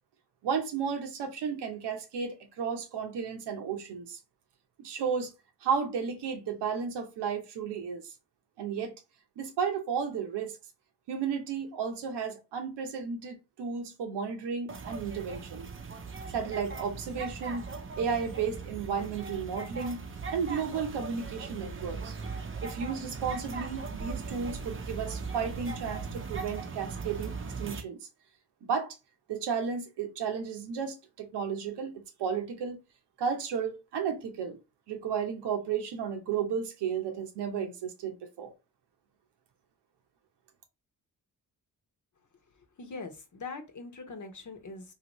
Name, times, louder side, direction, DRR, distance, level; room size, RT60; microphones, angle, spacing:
voice 1, 0.4-4.2 4.8-5.3 5.6-8.1 8.6-8.9 9.4-10.6 11.1-15.7 16.3-20.0 20.3-22.2 22.6-28.0 28.6-29.0 29.3-32.8 33.2-34.6 34.9-38.5, right 6 dB, 85° right, 0.8 m, -33 dB
sound 1, 14.7-27.8, right 4 dB, 30° right, 0.7 m, -39 dB
voice 2, 42.6-44.9, left 4 dB, 45° left, 1.0 m, -42 dB
2.8 x 2.7 x 3.0 m
supercardioid pair, 50°, 40 cm